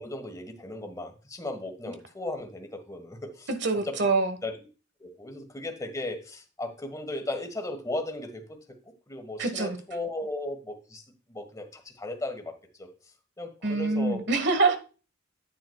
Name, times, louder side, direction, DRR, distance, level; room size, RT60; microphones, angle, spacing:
voice 1, 0.0-3.5 3.8-3.9 4.4-4.7 5.0-8.4 9.1-11.0 11.3-12.5 12.8-12.9 13.4-14.2, left 2 dB, 20° left, 1.5 m, -36 dB
voice 2, 3.6-4.4 9.4-9.8 13.6-14.8, right 3 dB, 65° right, 1.4 m, -25 dB
9.6 x 9.3 x 2.3 m
head